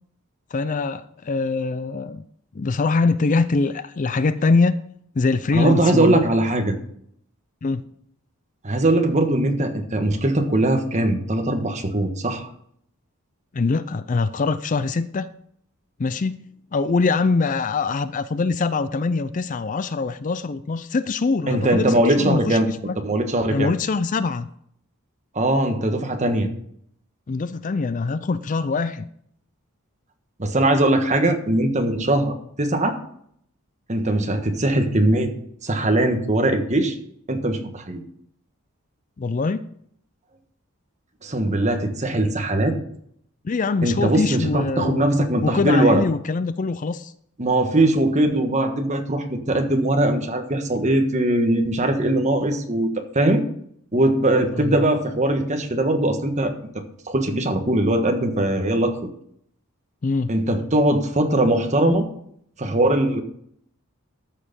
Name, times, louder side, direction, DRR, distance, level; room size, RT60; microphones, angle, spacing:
voice 1, 0.5-2.2 2.5-4.8 5.2-6.2 7.6-7.8 13.5-15.3 16.0-16.4 16.7-23.0 23.5-24.5 27.3-29.1 39.2-39.6 43.4-45.0 45.4-47.1 54.6-54.8 60.0-60.3, left 4 dB, 35° left, 14 dB, 0.4 m, -23 dB
voice 2, 5.5-6.7 8.6-12.5 21.5-22.7 23.0-23.7 25.3-26.5 30.4-33.0 33.9-35.3 35.6-36.9 37.3-38.0 41.2-42.8 43.8-46.0 47.4-53.4 53.9-56.5 57.1-58.9 60.3-62.1 62.6-63.2, right 1 dB, 30° right, 5 dB, 1.5 m, -20 dB
13.5 x 6.6 x 5.3 m, 0.68 s
head